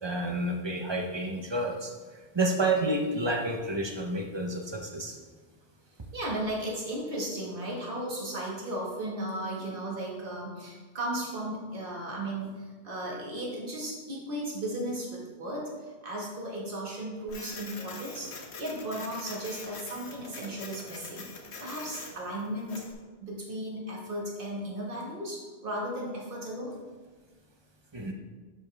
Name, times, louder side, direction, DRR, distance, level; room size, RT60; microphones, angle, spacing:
voice 1, 0.0-5.2 27.9-28.1, right 2 dB, 25° right, 1 dB, 1.0 m, -30 dB
voice 2, 6.1-21.3 21.6-22.8 23.2-26.7, right 1 dB, 55° right, -4 dB, 2.0 m, -35 dB
Printer, 17.3-22.9, left 4 dB, 75° left, 1.3 m, -44 dB
11.0 x 5.5 x 3.5 m, 1.3 s
omnidirectional pair, 1.1 m